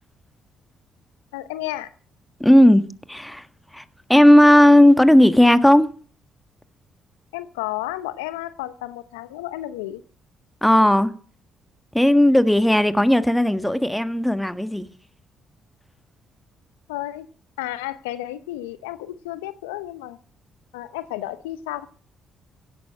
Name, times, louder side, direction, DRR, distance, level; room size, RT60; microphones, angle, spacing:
voice 1, 1.3-1.9 7.3-10.0 16.9-17.3 17.6-20.2 20.7-21.9, left 15 dB, 85° left, 0.8 m, -32 dB
voice 2, 2.4-2.8 3.1-3.5 3.7-3.8 4.1-5.9 10.6-11.1 11.9-14.9, left 1 dB, 5° left, 1.6 m, -15 dB
16.5 x 11.5 x 5.9 m
hypercardioid pair, 50°, 0 cm